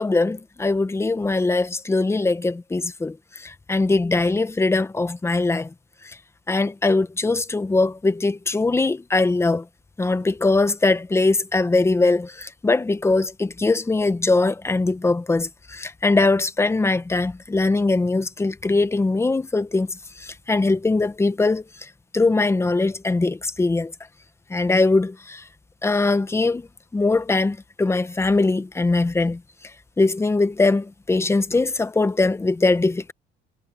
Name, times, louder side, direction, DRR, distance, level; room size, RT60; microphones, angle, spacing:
voice 1, 0.0-5.7 6.5-9.6 10.0-21.9 22.1-23.9 24.5-25.4 25.8-26.7 26.9-29.4 30.0-33.1, left 3 dB, 15° left, 1.2 m, -21 dB
cardioid pair, 120°, 19 cm